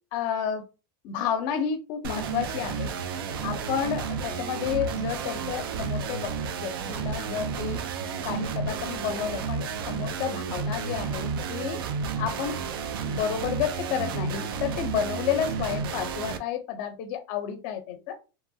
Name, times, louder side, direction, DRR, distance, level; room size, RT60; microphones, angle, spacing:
voice 1, 0.1-0.6 1.0-2.9 3.4-6.3 6.6-7.8 8.2-11.8 12.2-12.6 13.1-18.1, left 8 dB, 40° left, 0.5 m, -31 dB
sound 1, 2.0-16.4, right 5 dB, 85° right, 0.4 m, -32 dB
2.8 x 2.2 x 2.7 m
supercardioid pair, 170°, 12 cm